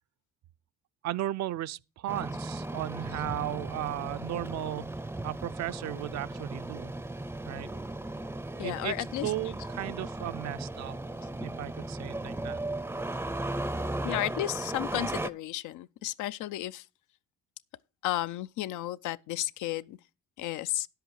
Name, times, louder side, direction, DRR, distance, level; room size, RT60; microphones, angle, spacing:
voice 1, 1.0-4.9 5.2-6.9 7.5-7.7 8.6-11.0 11.4-12.6, right 13 dB, 65° right, 0.5 m, -35 dB
Engine starting, 2.1-15.3, right 2 dB, 10° right, 0.5 m, -36 dB
voice 2, 8.6-9.3 14.0-16.8 18.0-20.0 20.4-20.9, left 14 dB, 80° left, 0.5 m, -33 dB
10.0 x 7.9 x 4.7 m
cardioid pair, 90°, 30 cm